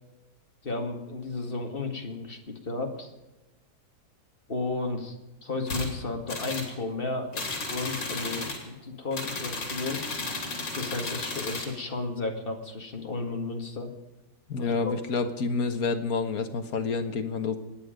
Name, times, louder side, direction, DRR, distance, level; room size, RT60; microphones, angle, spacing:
voice 1, 0.6-3.1 4.5-5.2 5.4-10.0 10.7-13.9 14.5-14.9, left 3 dB, 30° left, 3 dB, 2.0 m, -33 dB
sound 1, 5.7-5.9 6.3-6.7 7.3-8.6 9.1-11.7, left 3 dB, 80° left, 3.4 m, -34 dB
voice 2, 14.5-17.6, left 4 dB, 55° left, 7 dB, 1.7 m, -28 dB
26.5 x 9.8 x 5.1 m, 1.1 s
omnidirectional pair, 1.9 m